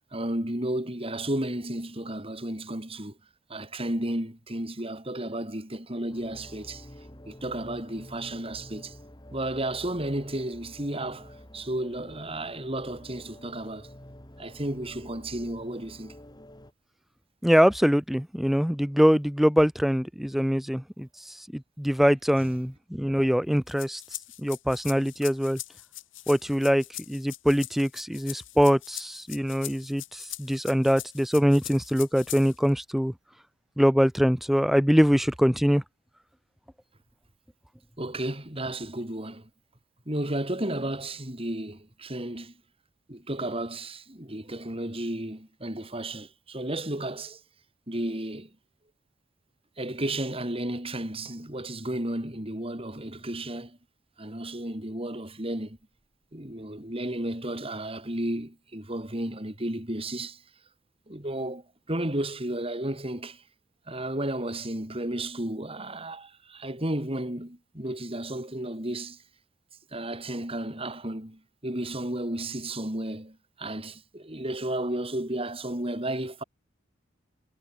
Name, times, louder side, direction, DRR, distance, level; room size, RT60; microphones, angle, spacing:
voice 1, 0.1-3.2 3.5-6.9 7.3-9.0 9.3-13.9 14.4-16.2 22.4-22.5 38.0-39.5 40.1-42.5 43.1-47.4 47.9-48.5 49.8-53.8 54.2-55.8 56.3-60.4 61.1-63.4 63.9-69.2 69.9-76.4, right 1 dB, 30° right, 4.2 m, -33 dB
sound 1, 6.1-16.7, left 1 dB, 20° left, 2.8 m, -48 dB
voice 2, 17.4-21.1 21.5-24.0 24.4-25.6 26.3-26.8 27.1-33.1 33.8-35.8, equal, ahead, 0.4 m, -23 dB
sound 2, 23.7-32.7, left 16 dB, 70° left, 2.2 m, -42 dB
head